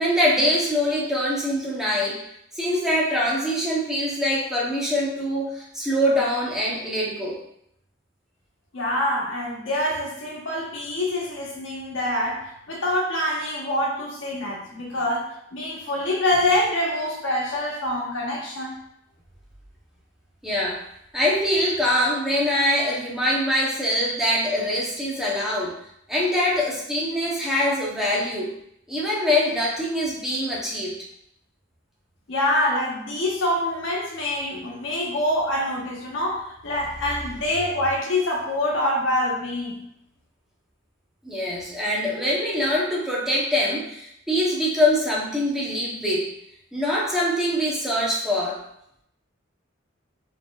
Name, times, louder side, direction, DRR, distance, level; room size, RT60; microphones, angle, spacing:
voice 1, 0.0-2.2 2.6-7.4 20.4-20.8 21.1-25.7 26.1-28.5 28.9-31.0 41.2-46.3 46.7-48.6, left 1 dB, 5° right, -5 dB, 0.8 m, -23 dB
voice 2, 8.7-18.8 32.3-39.9, left 1 dB, 90° left, -2 dB, 1.0 m, -25 dB
4.1 x 3.8 x 2.3 m, 0.74 s
head